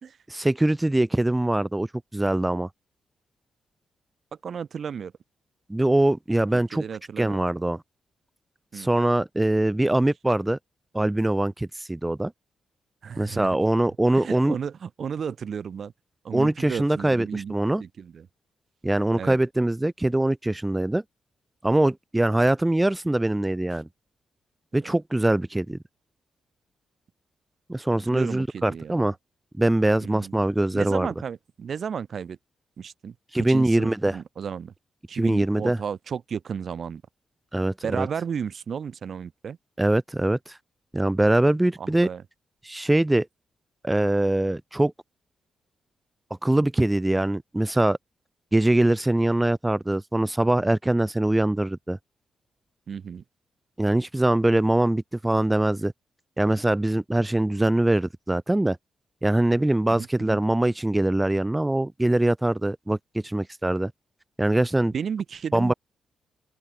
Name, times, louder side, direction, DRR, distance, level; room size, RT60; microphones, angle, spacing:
voice 1, 0.3-1.9 2.1-2.7 5.7-6.8 7.2-7.8 8.7-10.6 10.9-12.3 13.2-14.6 16.3-17.8 18.8-21.0 21.6-23.9 24.7-25.8 27.7-29.1 29.6-31.1 33.3-34.2 35.1-35.8 37.5-38.1 39.8-40.6 40.9-42.1 42.6-43.3 43.8-44.9 46.4-48.0 48.5-52.0 53.8-55.9 56.4-58.8 59.2-63.0 63.2-63.9 64.4-64.9 65.5-65.7, right 1 dB, 15° right, 1.5 m, -23 dB
voice 2, 4.4-5.1 6.7-7.4 8.7-8.9 13.0-13.6 14.1-15.9 16.2-18.3 19.1-19.4 24.7-25.0 28.0-29.1 30.0-30.3 30.7-32.4 32.8-34.7 35.1-37.0 37.8-39.6 41.8-42.2 52.9-53.2 59.9-60.4 64.9-65.7, right 7 dB, 60° right, 2.4 m, -33 dB
open air
supercardioid pair, 45°, 0 cm